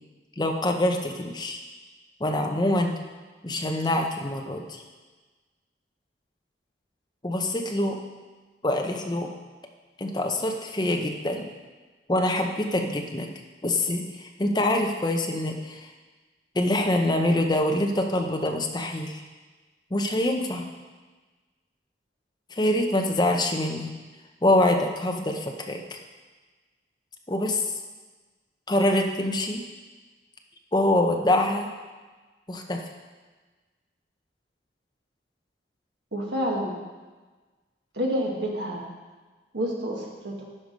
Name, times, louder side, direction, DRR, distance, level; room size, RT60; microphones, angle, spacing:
voice 1, 0.4-1.6 2.2-2.9 3.4-4.8 7.2-8.0 8.6-9.3 10.0-11.5 12.1-13.3 13.6-15.9 16.5-19.2 19.9-20.7 22.5-23.9 24.4-26.0 27.3-27.6 28.7-29.7 30.7-31.7 32.5-32.8, left 1 dB, 25° left, 3 dB, 0.8 m, -25 dB
voice 2, 36.1-36.7 37.9-38.8 39.5-40.4, equal, 70° right, -2 dB, 1.7 m, -28 dB
12.0 x 4.8 x 5.2 m, 1.3 s
head